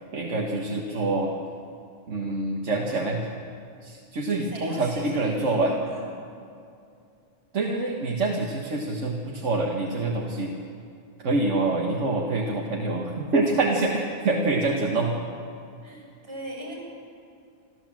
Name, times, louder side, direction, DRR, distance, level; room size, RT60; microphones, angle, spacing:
voice 1, 0.1-1.3 2.1-3.2 3.8-5.7 7.5-10.5 11.2-15.1, right 2 dB, 80° right, 0 dB, 1.8 m, -26 dB
voice 2, 4.3-6.1 15.8-16.7, right 1 dB, 55° right, -2 dB, 7.9 m, -39 dB
27.5 x 13.0 x 7.6 m, 2.5 s
omnidirectional pair, 1.2 m